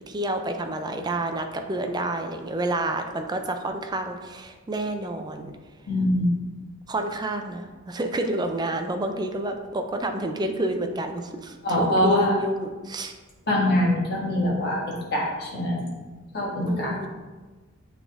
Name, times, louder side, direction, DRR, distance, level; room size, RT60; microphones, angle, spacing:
voice 1, 0.1-5.5 6.9-13.1 16.6-17.1, right 1 dB, 20° right, 5 dB, 0.4 m, -29 dB
voice 2, 5.9-6.4 11.6-12.3 13.5-15.9 16.3-16.9, left 1 dB, 50° left, -4 dB, 1.6 m, -23 dB
8.4 x 3.6 x 3.5 m, 1.3 s
head